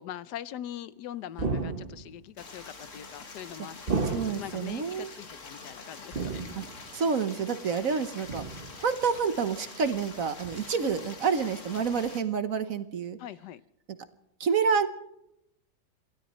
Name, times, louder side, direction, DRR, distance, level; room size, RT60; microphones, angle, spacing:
voice 1, 0.0-6.6 13.2-13.6, left 11 dB, 75° left, 16 dB, 1.3 m, -42 dB
sound 1, 1.4-2.2 3.9-4.7 6.1-6.9 8.3-8.8 10.4-10.5, right 4 dB, 35° right, 1.4 m, -32 dB
Stream, 2.4-12.2, left 4 dB, 45° left, 2.2 m, -46 dB
voice 2, 4.1-5.1 6.5-6.6 6.9-8.4 8.7-13.2 14.4-14.9, right 6 dB, 55° right, 10 dB, 1.4 m, -28 dB
27.5 x 16.5 x 3.1 m, 0.83 s
omnidirectional pair, 1.8 m